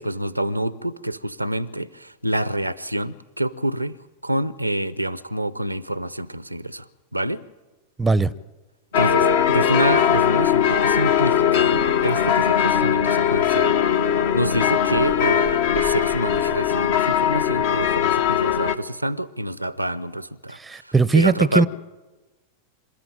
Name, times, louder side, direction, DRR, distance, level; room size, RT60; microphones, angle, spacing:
voice 1, 0.0-4.0 4.2-7.4 8.9-13.8 14.3-20.6 20.8-21.7, right 1 dB, 90° right, 0.6 m, -27 dB
voice 2, 8.0-8.3 20.5-21.7, right 3 dB, 10° right, 0.6 m, -19 dB
sound 1, 8.9-18.7, left 9 dB, 55° left, 1.0 m, -20 dB
26.5 x 13.0 x 9.0 m
figure-of-eight pair, 90°, 0 cm